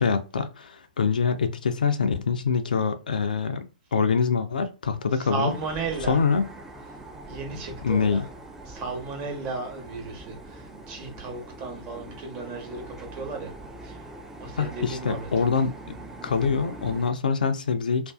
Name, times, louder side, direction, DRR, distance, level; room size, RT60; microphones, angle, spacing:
voice 1, 0.0-3.7 3.9-5.5 6.1-6.5 7.8-8.3 14.6-16.0 16.2-18.1, left 5 dB, 70° left, 0.4 m, -25 dB
voice 2, 5.1-6.2 7.3-8.2 8.7-13.5 13.8-14.1 14.4-15.3, right 4 dB, 35° right, 0.9 m, -34 dB
sound 1, 5.5-17.1, right 2 dB, 10° right, 0.4 m, -42 dB
2.5 x 2.2 x 2.3 m
figure-of-eight pair, 115°, 5 cm